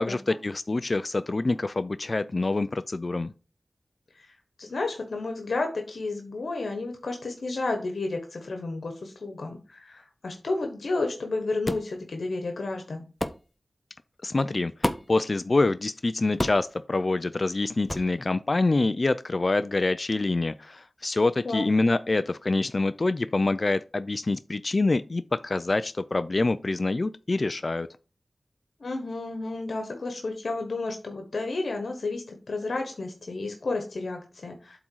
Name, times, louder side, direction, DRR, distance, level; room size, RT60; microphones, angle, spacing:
voice 1, 0.0-3.3 14.2-27.9, left 2 dB, 50° left, 0.4 m, -26 dB
voice 2, 4.1-13.0 21.4-21.6 28.8-34.8, left 3 dB, 85° left, 1.2 m, -32 dB
sound 1, 11.6-11.9 13.2-13.4 14.8-15.2 16.4-16.7 17.9-18.1, left 1 dB, 20° left, 0.7 m, -29 dB
8.0 x 3.7 x 4.6 m
wide cardioid pair, 70°, 0 cm